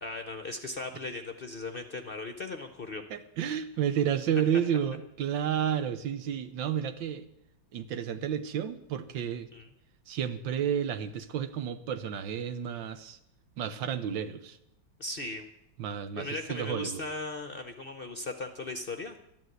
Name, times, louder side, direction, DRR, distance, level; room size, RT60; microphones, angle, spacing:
voice 1, 0.0-3.0 9.5-9.7 15.0-15.5 16.2-19.2, left 2 dB, 45° left, 7 dB, 0.7 m, -37 dB
voice 2, 3.1-7.2 7.7-9.5 10.1-13.2 13.6-14.6 15.8-17.0, right 9 dB, 90° right, 11 dB, 1.7 m, -31 dB
12.5 x 11.0 x 7.9 m, 0.81 s
omnidirectional pair, 2.0 m